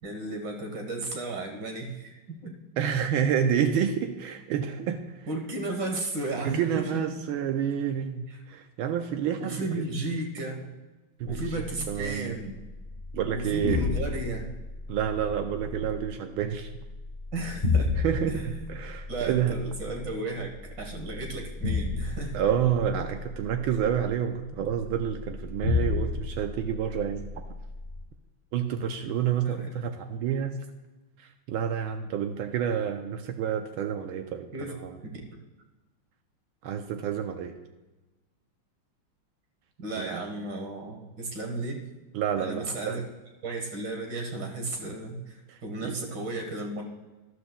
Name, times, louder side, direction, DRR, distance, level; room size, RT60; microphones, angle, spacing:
voice 1, 0.0-2.5 5.3-7.0 8.3-8.4 9.4-10.7 11.2-12.6 13.2-14.5 17.3-17.9 18.3-18.6 19.1-22.4 29.4-29.7 34.5-34.7 35.0-35.1 39.8-41.9 42.4-43.0 43.4-46.8, right 2 dB, 60° right, 2 dB, 2.1 m, -34 dB
voice 2, 2.8-5.3 6.4-9.9 11.2-12.4 13.1-13.8 14.9-16.7 18.0-19.5 22.3-27.3 28.5-30.6 31.5-35.0 36.6-37.5 40.0-40.2 42.1-43.0 45.5-45.9, right 8 dB, 85° right, 5 dB, 1.5 m, -29 dB
sound 1, 11.2-28.0, left 4 dB, 45° left, 0.6 m, -33 dB
12.5 x 12.0 x 2.3 m, 1.1 s
omnidirectional pair, 2.3 m